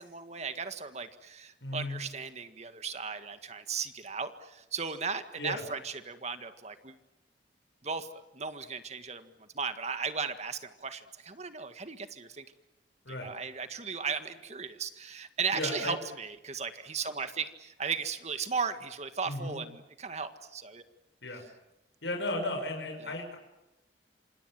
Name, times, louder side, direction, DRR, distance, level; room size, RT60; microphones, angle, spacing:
voice 1, 0.0-6.9 7.8-8.1 8.3-9.3 9.5-12.4 13.2-20.8 23.0-23.1, right 5 dB, 40° right, 9 dB, 1.8 m, -36 dB
voice 2, 1.6-2.0 5.4-5.6 13.0-13.3 15.5-15.9 19.2-19.6 21.2-21.5 22.0-23.4, left 1 dB, 80° left, 3 dB, 6.2 m, -35 dB
27.5 x 26.5 x 7.7 m, 0.95 s
head